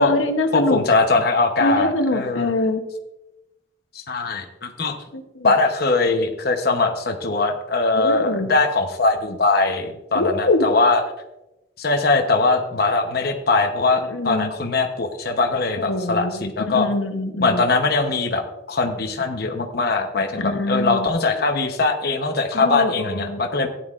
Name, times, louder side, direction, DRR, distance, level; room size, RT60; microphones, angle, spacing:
voice 1, 0.0-1.0 1.6-2.8 5.1-5.5 7.9-8.5 10.1-10.7 14.1-14.5 15.8-17.6 20.4-21.1 22.5-23.4, left 2 dB, 90° left, 6 dB, 0.9 m, -23 dB
voice 2, 0.5-2.5 3.9-4.9 5.4-11.0 11.8-16.9 17.4-18.4 18.7-23.7, left 3 dB, 55° left, 4 dB, 0.9 m, -21 dB
14.5 x 9.4 x 2.5 m, 0.96 s
head